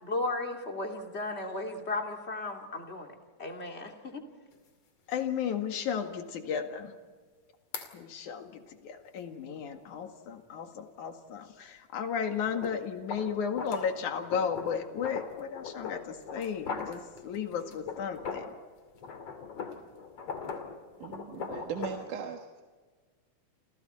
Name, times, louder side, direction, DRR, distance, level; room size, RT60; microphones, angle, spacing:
voice 1, 0.0-4.2, left 2 dB, 20° left, 2 dB, 2.4 m, -35 dB
sound 1, 4.5-4.6 5.1-5.2 7.7-7.9 12.4-18.6 18.9-22.1, left 5 dB, 50° left, 3.3 m, -40 dB
voice 2, 5.1-6.9 7.9-18.5, left 7 dB, 70° left, 5 dB, 3.3 m, -34 dB
voice 3, 21.0-22.6, right 7 dB, 75° right, 3 dB, 3.0 m, -39 dB
29.5 x 28.0 x 4.4 m, 1.4 s
omnidirectional pair, 3.7 m